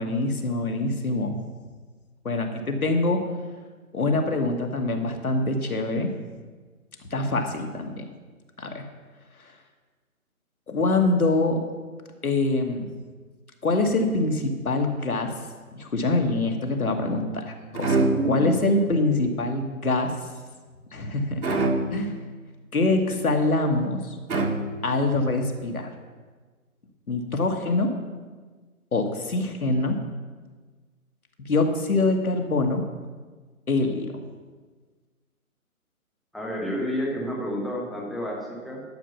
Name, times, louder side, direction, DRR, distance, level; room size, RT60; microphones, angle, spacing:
voice 1, 0.0-1.4 2.2-3.2 3.9-6.1 7.1-8.0 8.6-8.8 10.7-11.6 12.2-12.9 13.6-15.3 15.8-20.1 20.9-21.4 21.9-22.1 22.7-24.2 24.8-25.9 27.1-27.9 28.9-30.0 31.4-32.8 33.7-34.1, left 2 dB, 75° left, 4 dB, 2.0 m, -24 dB
sound 1, 17.8-18.6 21.4-22.2 24.3-25.1, right 2 dB, 75° right, 2.2 m, -25 dB
voice 2, 18.1-18.5 36.3-38.8, equal, ahead, -3 dB, 0.5 m, -30 dB
12.0 x 6.9 x 5.9 m, 1.4 s
figure-of-eight pair, 165°, 44 cm